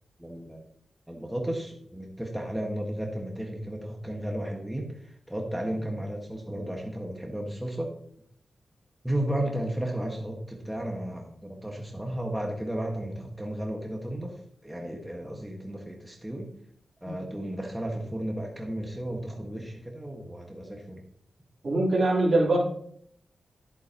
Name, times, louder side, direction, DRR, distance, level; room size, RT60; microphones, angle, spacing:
voice 1, 0.2-0.6 1.1-7.9 9.0-16.5 17.0-21.0, right 1 dB, 5° right, 0 dB, 1.5 m, -34 dB
voice 2, 21.6-22.6, right 2 dB, 55° right, -3 dB, 3.3 m, -23 dB
11.0 x 8.0 x 2.9 m, 0.63 s
cardioid pair, 75°, 0 cm